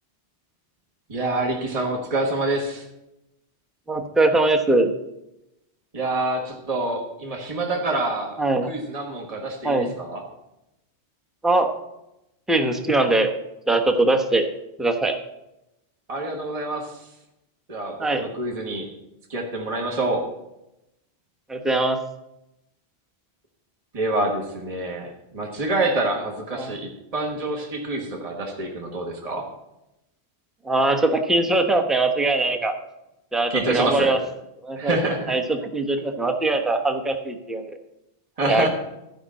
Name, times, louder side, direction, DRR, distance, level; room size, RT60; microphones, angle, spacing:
voice 1, 1.1-2.8 5.9-8.4 8.6-10.2 16.1-17.1 17.7-18.9 19.3-20.2 23.9-25.1 25.3-29.4 33.5-34.2 34.8-35.3 38.4-38.7, right 2 dB, 35° right, 0 dB, 1.5 m, -26 dB
voice 2, 3.9-4.9 8.4-8.7 9.6-9.9 11.4-11.7 12.5-13.3 13.7-14.4 14.8-15.2 18.0-18.2 21.5-22.0 26.6-26.7 30.6-32.7 33.3-34.2 34.6-35.0 35.3-37.8 38.5-38.7, right 2 dB, ahead, 5 dB, 0.9 m, -21 dB
13.0 x 5.4 x 7.5 m, 0.89 s
omnidirectional pair, 1.1 m